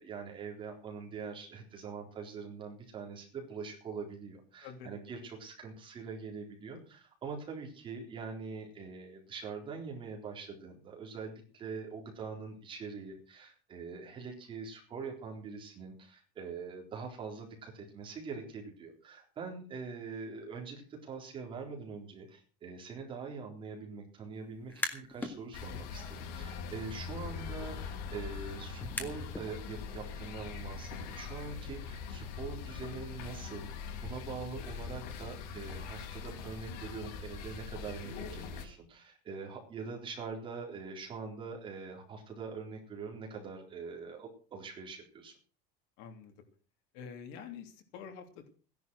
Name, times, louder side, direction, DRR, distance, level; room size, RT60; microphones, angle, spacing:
voice 1, 0.0-33.7 34.0-45.3, right 5 dB, 25° right, 1 dB, 4.0 m, -43 dB
sound 1, 24.5-25.4 25.8-29.5, left 2 dB, 10° left, 1.8 m, -42 dB
sound 2, 25.5-38.7, left 6 dB, 80° left, 5.1 m, -42 dB
voice 2, 46.0-46.3 46.9-48.5, left 7 dB, 60° left, 6 dB, 3.0 m, -47 dB
16.0 x 11.0 x 6.3 m, 0.39 s
cardioid pair, 180°, 21 cm